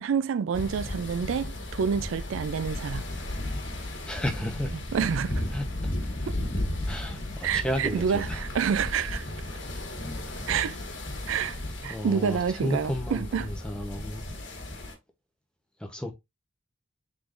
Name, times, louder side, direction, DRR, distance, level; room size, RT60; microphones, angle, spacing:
voice 1, 0.0-3.1 4.9-5.4 7.4-9.3 10.5-10.8 11.3-11.6 11.8-13.5, right 7 dB, 80° right, 0.4 m, -28 dB
sound 1, 0.5-14.9, left 1 dB, 65° left, 1.5 m, -34 dB
voice 2, 4.1-4.7 5.5-5.9 6.9-8.8 9.5-9.8 10.3-10.4 11.8-14.3 15.8-16.1, equal, 5° left, 0.8 m, -33 dB
4.8 x 3.8 x 2.5 m
head